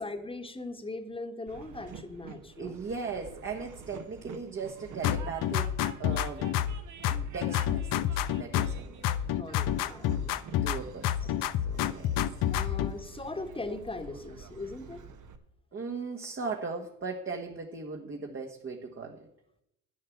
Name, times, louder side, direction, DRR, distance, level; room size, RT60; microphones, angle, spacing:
voice 1, 0.0-2.8 9.3-10.5 11.2-11.3 12.5-15.0 17.5-17.6, left 2 dB, 15° left, 8 dB, 1.5 m, -40 dB
Train, 1.5-15.4, right 6 dB, 45° right, 1.3 m, -49 dB
voice 2, 2.6-6.6 7.0-9.0 10.6-11.1 11.7-12.1 12.5-12.7 15.7-19.3, right 4 dB, 30° right, 1 dB, 1.4 m, -38 dB
sound 1, 5.0-6.8 7.0-8.8 9.0-10.8 11.0-12.9, left 11 dB, 55° left, 0.8 m, -28 dB
11.0 x 5.6 x 8.4 m, 0.80 s
hypercardioid pair, 70°, 40 cm